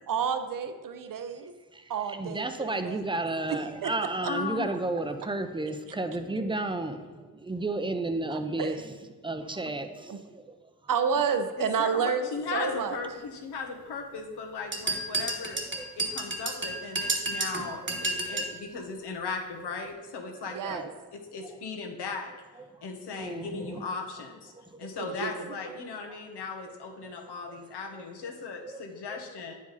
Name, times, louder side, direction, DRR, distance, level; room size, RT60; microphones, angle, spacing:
voice 1, 0.1-1.5 1.9-3.0 3.5-3.9 4.2-4.3 8.3-8.8 10.1-10.2 10.9-13.0 20.5-20.9 25.0-25.6, right 6 dB, 55° right, 0.7 m, -30 dB
voice 2, 1.7-8.9 9.2-10.6 15.7-15.9 18.3-18.5 20.5-20.9 23.1-23.9 24.5-24.9 27.0-27.1 27.5-27.6 27.9-28.0 28.7-28.8 29.1-29.2, right 2 dB, 15° right, 0.6 m, -33 dB
voice 3, 4.3-4.7 11.6-12.0 12.3-15.6 16.0-20.8 21.1-22.3 22.8-24.5 24.8-29.5, left 4 dB, 90° left, 1.2 m, -37 dB
sound 1, 14.7-18.6, right 2 dB, 30° right, 1.2 m, -31 dB
9.1 x 5.0 x 4.0 m
cardioid pair, 85°, 39 cm